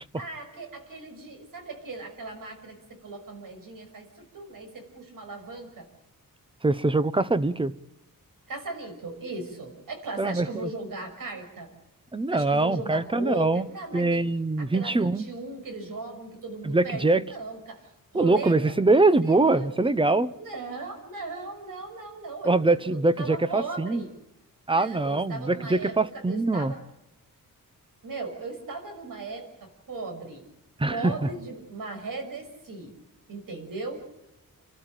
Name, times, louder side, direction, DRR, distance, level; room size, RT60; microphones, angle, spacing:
voice 1, 0.2-5.9 8.5-11.7 12.3-14.3 14.6-19.7 20.3-24.2 24.7-25.9 26.3-26.8 28.0-30.4 30.9-32.9 33.3-34.0, right 3 dB, 70° right, 5 dB, 5.9 m, -38 dB
voice 2, 6.6-7.7 10.2-10.7 12.1-13.7 13.9-15.2 16.6-17.2 18.1-20.3 22.4-24.1 24.7-26.7 30.8-31.1, right 2 dB, 15° right, 14 dB, 0.7 m, -23 dB
30.0 x 13.0 x 9.0 m, 0.93 s
wide cardioid pair, 170°, 34 cm